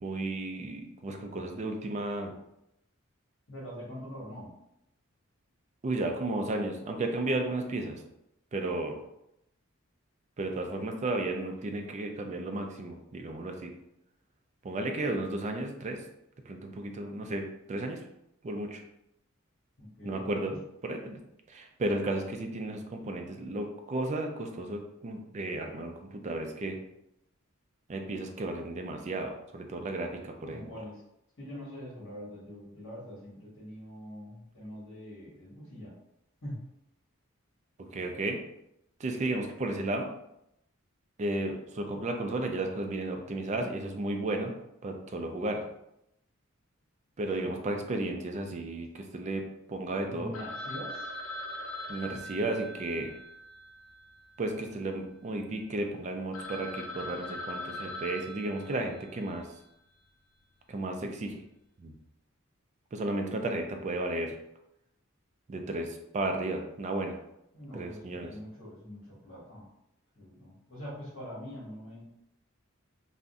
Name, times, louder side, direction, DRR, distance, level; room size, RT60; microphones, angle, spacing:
voice 1, 0.0-2.3 5.8-8.0 8.5-9.0 10.4-13.7 14.6-16.0 16.5-18.0 18.4-18.8 20.0-20.5 20.8-21.2 21.5-26.8 27.9-30.7 37.9-38.4 39.0-40.1 41.2-44.5 44.8-45.6 47.2-50.3 51.9-53.1 54.4-59.5 60.7-61.4 61.8-61.9 62.9-64.4 65.5-67.2 67.7-68.3, right 2 dB, 35° right, 4 dB, 0.4 m, -33 dB
voice 2, 3.5-4.5 19.8-20.6 30.4-31.0 31.4-35.9 36.4-36.6 47.4-47.8 50.0-51.1 67.5-69.7 70.2-72.0, equal, 65° left, -8 dB, 1.3 m, -44 dB
Telephone, 50.3-54.7 54.9-55.0 55.6-55.7 56.0-56.1 56.3-59.3, left 1 dB, 85° left, 0.5 m, -41 dB
3.6 x 2.1 x 2.6 m, 0.82 s
head